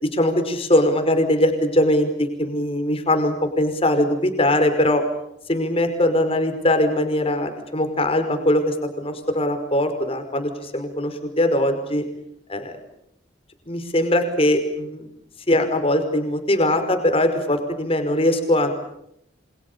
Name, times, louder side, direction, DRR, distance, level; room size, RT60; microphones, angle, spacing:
voice 1, 0.0-5.0 5.5-12.0 12.5-12.8 13.7-15.1 15.5-18.7, left 1 dB, 30° left, 7 dB, 5.4 m, -21 dB
29.0 x 27.0 x 7.0 m, 0.76 s
head